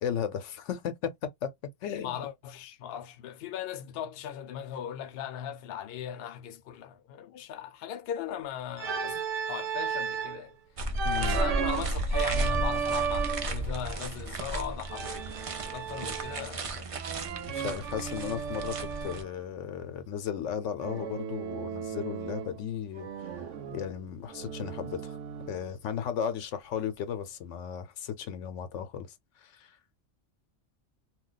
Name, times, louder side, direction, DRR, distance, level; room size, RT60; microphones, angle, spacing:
voice 1, 0.0-1.5 1.8-2.3 11.0-11.4 17.5-23.1 23.7-25.2 25.5-29.1 29.4-29.8, left 8 dB, 90° left, 1.0 m, -35 dB
voice 2, 2.0-9.2 9.5-10.6 11.2-16.9, left 9 dB, 65° left, 0.7 m, -38 dB
Organ, 8.8-10.4 10.9-13.6 14.9-16.6 17.0-19.3 20.8-22.6 22.9-25.7, right 6 dB, 85° right, 1.0 m, -34 dB
sound 1, 10.8-19.2, right 1 dB, 50° right, 0.4 m, -33 dB
2.3 x 2.2 x 3.8 m
omnidirectional pair, 1.2 m